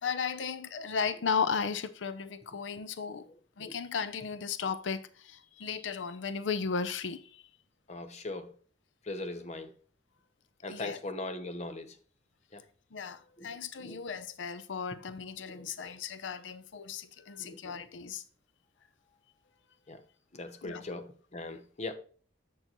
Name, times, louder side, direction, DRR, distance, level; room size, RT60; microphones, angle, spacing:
voice 1, 0.0-3.3 3.6-7.5 10.7-11.0 12.9-18.2 20.6-20.8, left 6 dB, 85° left, 0.6 m, -35 dB
voice 2, 7.9-8.5 9.0-9.7 10.6-12.0 12.5-12.6 13.4-13.5 13.8-14.0 15.5-15.7 17.4-17.8 19.9-20.0 20.3-22.0, left 2 dB, 40° left, 0.8 m, -40 dB
7.7 x 6.5 x 3.0 m
head